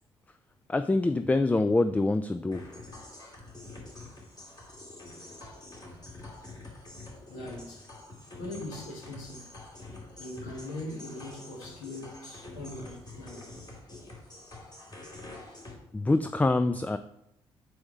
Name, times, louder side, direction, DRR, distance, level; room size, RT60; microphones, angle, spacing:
voice 1, 0.7-2.6 15.9-17.0, left 2 dB, 10° left, 0.3 m, -25 dB
sound 1, 2.5-15.7, left 2 dB, 30° left, 2.3 m, -46 dB
voice 2, 7.3-7.8 8.3-9.5 10.2-13.5, left 1 dB, 65° left, 1.5 m, -41 dB
7.7 x 3.5 x 5.4 m
figure-of-eight pair, 45°, 14 cm